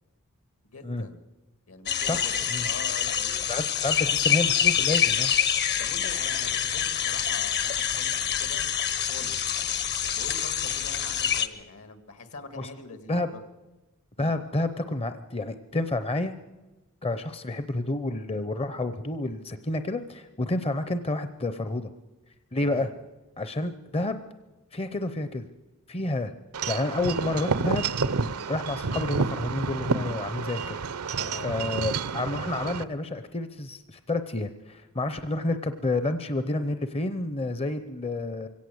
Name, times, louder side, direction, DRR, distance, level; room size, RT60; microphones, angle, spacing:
voice 1, 0.6-1.2 1.7-3.5 5.8-8.6 9.0-9.5 10.2-13.4 14.2-14.4 22.6-22.9 31.1-31.6, left 3 dB, 70° left, 10 dB, 2.2 m, -43 dB
sound 1, 1.9-11.5, left 9 dB, 50° left, 1.0 m, -26 dB
voice 2, 2.0-2.7 3.5-5.3 12.6-12.7 13.1-13.3 14.2-16.3 17.0-21.9 22.5-22.9 23.4-24.2 24.7-25.5 25.9-26.3 26.7-27.9 28.5-30.8 31.4-38.5, left 2 dB, 25° left, 11 dB, 0.7 m, -29 dB
Wind chime / Wind, 26.5-32.8, right 4 dB, 80° right, 0.8 m, -29 dB
23.0 x 17.0 x 8.0 m, 1.1 s
head